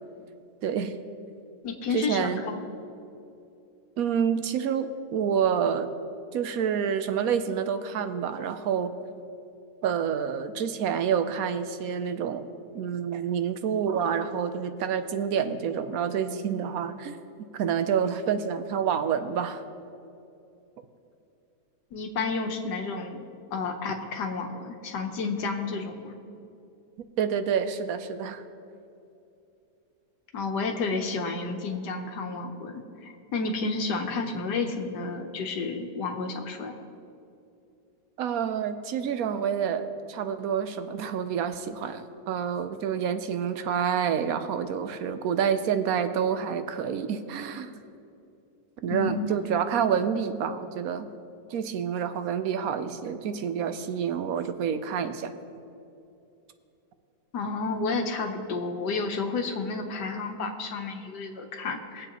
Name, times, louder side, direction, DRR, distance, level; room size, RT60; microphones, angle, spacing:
voice 1, 0.6-1.0 1.9-2.4 4.0-5.9 6.3-8.9 9.8-12.5 12.7-17.2 17.5-19.6 27.2-28.4 38.2-47.8 48.8-51.1 51.5-55.3, right 7 dB, 65° right, 9 dB, 1.0 m, -28 dB
voice 2, 1.6-2.6 21.9-23.2 23.5-26.1 30.3-36.7 48.9-49.2 57.3-62.1, left 4 dB, 85° left, 4 dB, 1.6 m, -31 dB
22.5 x 7.8 x 3.0 m, 2.7 s
omnidirectional pair, 1.8 m